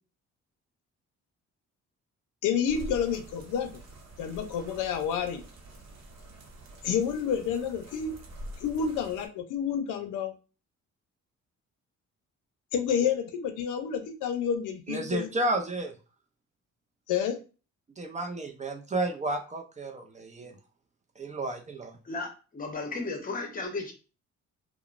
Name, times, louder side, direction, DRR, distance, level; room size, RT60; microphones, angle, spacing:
voice 1, 2.4-3.7 4.2-5.4 6.8-8.2 8.6-10.3 12.7-15.3 17.1-17.4, left 7 dB, 85° left, 0.5 m, -29 dB
sound 1, 2.6-9.3, right 1 dB, 60° right, 0.8 m, -46 dB
voice 2, 14.9-15.9 18.0-20.6 21.2-22.0, right 2 dB, 25° right, 0.4 m, -32 dB
voice 3, 22.0-23.9, left 3 dB, 30° left, 0.9 m, -34 dB
2.9 x 2.1 x 2.4 m
cardioid pair, 90°, 30 cm